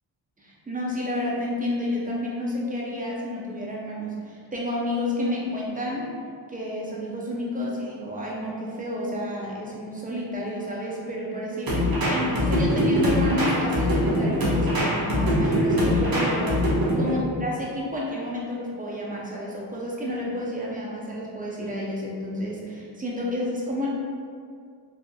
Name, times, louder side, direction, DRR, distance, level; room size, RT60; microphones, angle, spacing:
voice 1, 0.4-6.1 6.5-16.6 17.0-23.9, left 1 dB, 15° right, -4 dB, 0.7 m, -30 dB
sound 1, 11.7-17.2, left 1 dB, 45° right, 0.9 m, -23 dB
2.7 x 2.5 x 2.3 m, 2.2 s
cardioid pair, 50°, 49 cm